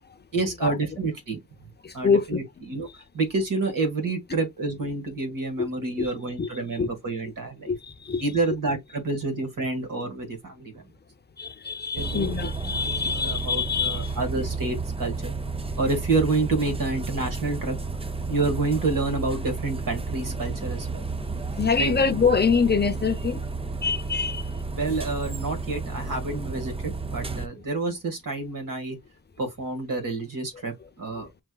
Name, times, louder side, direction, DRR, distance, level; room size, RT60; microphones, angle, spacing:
voice 1, 0.3-1.4 1.9-2.9 3.1-7.7 8.2-10.8 11.9-12.4 12.7-12.8 13.1-15.3 15.8-17.8 18.3-21.0 21.8-21.9 24.8-29.0 29.4-31.3, right 3 dB, 60° right, 1.9 m, -28 dB
voice 2, 1.8-2.4 5.6-5.7 6.0-6.1 6.4-6.5 6.8-6.9 7.7-8.2 11.4-14.1 21.6-23.4 23.8-24.4, left 5 dB, 30° left, 0.7 m, -25 dB
sound 1, 11.9-27.5, right 3 dB, 15° right, 0.4 m, -32 dB
5.9 x 3.2 x 2.3 m
wide cardioid pair, 145°, 37 cm